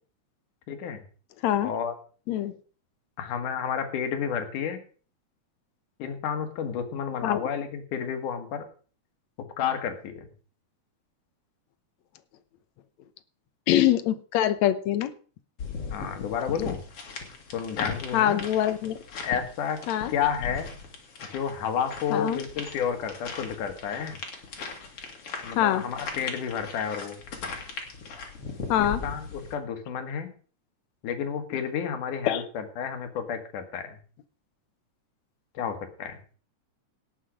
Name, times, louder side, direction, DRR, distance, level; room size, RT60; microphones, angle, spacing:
voice 1, 0.7-1.0 1.6-1.9 3.2-4.8 6.0-8.6 9.6-10.3 15.9-16.8 17.5-18.4 19.2-19.8 20.1-20.7 21.3-24.2 25.4-27.2 28.8-30.3 31.0-34.0 35.5-36.2, left 7 dB, 85° left, 7 dB, 3.1 m, -31 dB
voice 2, 13.7-15.1 18.1-19.0 19.9-20.1 22.1-22.4 25.6-25.8 28.7-29.0 32.3-32.4, left 12 dB, 70° left, 13 dB, 2.1 m, -24 dB
sound 1, 15.6-29.5, left 5 dB, 50° left, 3.2 m, -39 dB
18.0 x 7.7 x 5.1 m, 0.41 s
omnidirectional pair, 3.5 m